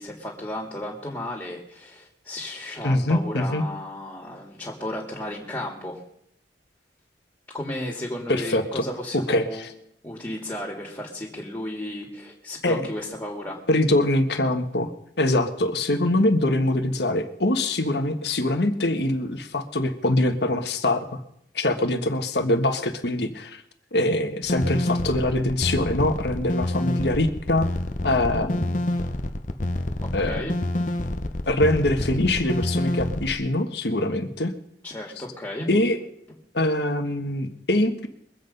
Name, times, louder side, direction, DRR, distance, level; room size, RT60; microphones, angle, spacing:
voice 1, 0.0-6.0 7.5-9.7 10.0-13.6 30.0-30.6 34.8-35.7, left 1 dB, 15° left, -2 dB, 2.2 m, -34 dB
voice 2, 2.8-3.6 8.3-8.8 9.1-9.7 12.6-12.9 13.7-14.9 15.2-21.2 21.5-23.6 23.9-27.7 28.0-28.8 30.1-30.5 31.5-34.5 35.7-36.0 36.5-38.1, left 1 dB, 65° left, 7 dB, 1.5 m, -23 dB
sound 1, 24.5-33.3, left 1 dB, 45° left, 0.8 m, -28 dB
22.5 x 8.0 x 5.4 m, 0.73 s
head